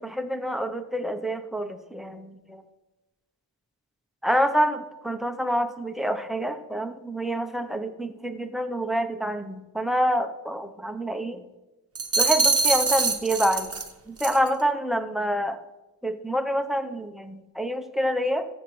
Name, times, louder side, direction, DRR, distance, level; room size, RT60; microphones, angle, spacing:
voice 1, 0.0-2.6 4.2-11.4 12.2-13.7 14.1-15.6 16.0-18.5, equal, ahead, 9 dB, 0.6 m, -27 dB
sound 1, 12.0-13.9 14.2-14.5, right 4 dB, 30° right, 1.0 m, -23 dB
14.0 x 7.2 x 3.1 m, 1.1 s
wide cardioid pair, 115°, 47 cm